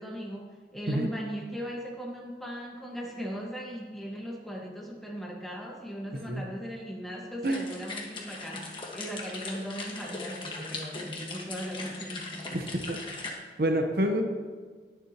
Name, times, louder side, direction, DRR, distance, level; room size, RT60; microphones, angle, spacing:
voice 1, 0.0-12.5, equal, ahead, -2 dB, 1.5 m, -38 dB
voice 2, 6.1-6.4 7.4-7.6 12.5-13.3 13.6-14.2, right 1 dB, 55° right, 4 dB, 1.0 m, -28 dB
sound 1, 7.4-13.3, left 3 dB, 30° left, 1.5 m, -39 dB
20.0 x 7.1 x 3.0 m, 1.5 s
head